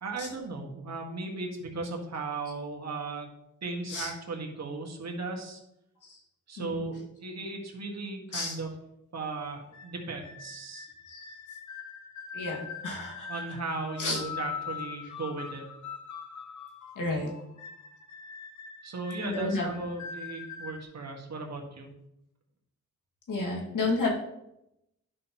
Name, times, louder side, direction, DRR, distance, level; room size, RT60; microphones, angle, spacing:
voice 1, 0.0-3.3 3.6-5.6 6.5-8.7 9.1-10.9 13.3-15.6 18.8-21.9, right 3 dB, 60° right, 1 dB, 1.7 m, -37 dB
voice 2, 6.6-6.9 8.3-8.5 11.1-11.2 12.3-12.6 12.8-13.3 14.0-14.2 17.0-17.3 19.2-19.7 23.3-24.1, left 3 dB, 90° left, -2 dB, 2.1 m, -31 dB
sound 1, 9.2-20.8, left 6 dB, 65° left, 0.9 m, -42 dB
10.5 x 5.6 x 3.0 m, 0.84 s
cardioid pair, 70°, 31 cm